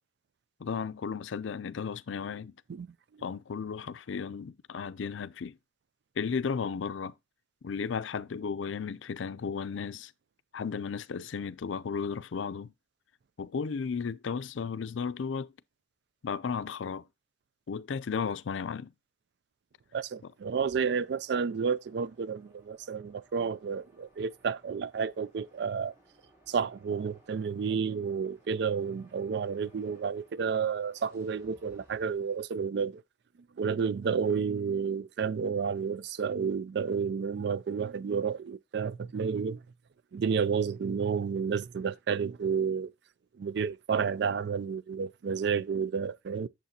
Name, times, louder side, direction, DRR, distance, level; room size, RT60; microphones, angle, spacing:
voice 1, 0.6-2.5 3.2-5.6 6.2-7.1 7.6-10.1 10.5-12.7 13.4-15.5 16.2-17.0 17.7-18.9, left 6 dB, 85° left, 0.4 m, -34 dB
voice 2, 19.9-25.9 26.5-33.0 33.6-39.6 40.1-42.9 43.4-46.5, right 6 dB, 60° right, 0.4 m, -31 dB
sound 1, 20.5-32.4, right 2 dB, 15° right, 3.0 m, -63 dB
8.1 x 7.2 x 2.7 m
head